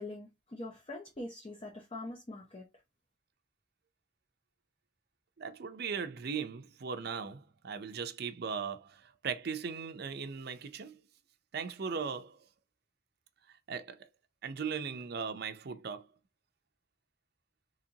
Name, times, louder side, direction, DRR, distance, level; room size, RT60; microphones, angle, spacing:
voice 1, 0.0-2.7, left 2 dB, 30° left, 0.7 m, -43 dB
voice 2, 5.4-11.0 11.5-12.4 13.5-14.1 14.4-16.1, right 6 dB, 60° right, 0.5 m, -38 dB
4.0 x 2.9 x 2.7 m
head